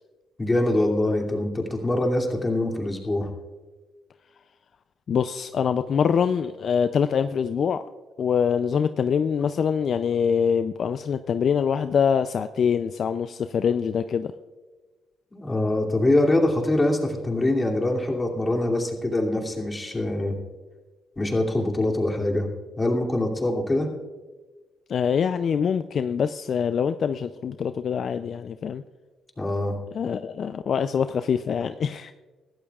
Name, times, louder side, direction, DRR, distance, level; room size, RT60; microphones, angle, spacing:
voice 1, 0.4-3.3 15.3-20.4 21.2-22.5 22.8-23.9 29.4-29.8, left 1 dB, 20° left, 0 dB, 2.6 m, -24 dB
voice 2, 5.1-7.8 8.2-14.3 24.9-28.8 29.9-32.1, left 7 dB, 55° left, 10 dB, 0.4 m, -24 dB
21.0 x 14.0 x 2.4 m, 1.3 s
cardioid pair, 90°, 0 cm